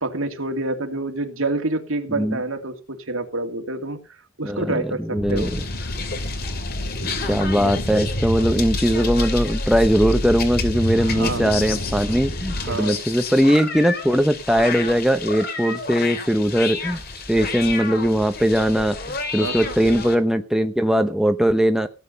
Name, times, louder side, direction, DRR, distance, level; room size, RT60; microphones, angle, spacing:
voice 1, 0.0-4.0 4.4-5.5 11.0-11.5 12.6-13.0 19.4-19.7, right 2 dB, 75° right, 5 dB, 2.6 m, -27 dB
voice 2, 4.4-5.6 7.0-17.0 17.3-21.9, equal, ahead, 7 dB, 0.9 m, -20 dB
sound 1, 5.1-12.8, left 1 dB, 70° left, 2.2 m, -28 dB
sound 2, 5.3-20.1, left 5 dB, 45° left, 2.7 m, -32 dB
17.0 x 9.1 x 5.5 m, 0.32 s
head